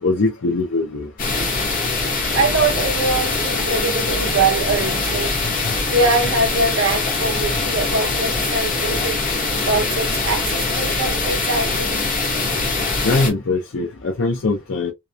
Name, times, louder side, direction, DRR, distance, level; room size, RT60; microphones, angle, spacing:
voice 1, 0.0-1.1 5.6-5.7 13.0-14.9, left 3 dB, 75° left, 0.5 m, -21 dB
sound 1, 1.2-13.3, left 3 dB, 40° left, 0.9 m, -22 dB
voice 2, 2.3-9.2 9.6-12.0, right 3 dB, 65° right, 0.7 m, -23 dB
2.9 x 2.0 x 2.3 m
head